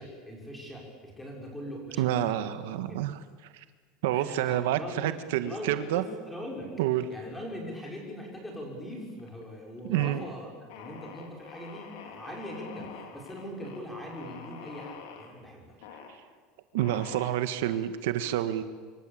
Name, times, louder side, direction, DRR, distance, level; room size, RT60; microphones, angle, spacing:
voice 1, 0.0-2.5 2.8-3.1 4.1-5.1 5.4-6.7 7.1-15.8, equal, 5° left, 0 dB, 5.9 m, -41 dB
voice 2, 2.0-3.2 4.0-6.0 6.8-7.0 9.9-10.2 16.7-18.6, right 12 dB, 80° right, 10 dB, 1.6 m, -28 dB
sound 1, 7.8-8.6 8.9-9.4 9.8-10.2 10.7-15.3 15.8-16.2 16.8-17.8, left 7 dB, 70° left, 4.3 m, -46 dB
26.0 x 24.5 x 8.8 m, 1.5 s
cardioid pair, 175°, 0 cm